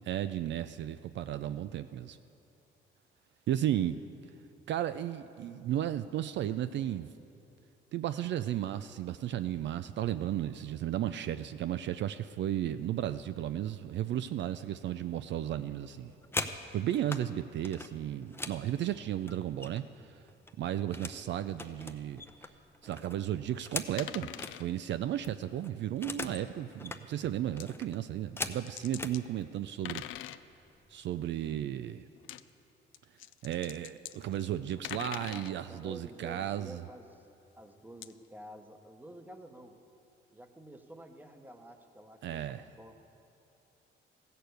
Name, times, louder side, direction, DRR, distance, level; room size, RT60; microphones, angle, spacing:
voice 1, 0.1-2.2 3.5-4.0 4.7-7.1 7.9-16.1 16.7-20.2 20.6-22.2 22.8-30.0 30.9-32.1 33.4-36.9 42.2-42.7, right 11 dB, 65° right, 12 dB, 0.4 m, -34 dB
sound 1, 16.0-17.2 17.6-20.0 20.3-21.2 21.5-24.6 24.9-25.0 25.2-26.4 26.7-27.0 27.6-29.2 30.0-30.2 30.5-30.9 31.2-31.7, left 2 dB, 10° left, 0.6 m, -41 dB
sound 2, 24.0-24.7 26.7-26.8 27.6-27.7 28.6-29.2 29.7-30.4 32.2-32.4 32.9-35.5 38.0-38.1, left 13 dB, 80° left, 0.4 m, -42 dB
voice 2, 35.3-37.3 37.6-39.8 40.3-42.9, right 1 dB, 10° right, 6 dB, 1.0 m, -50 dB
15.0 x 6.7 x 8.0 m, 2.7 s
cardioid pair, 90°, 20 cm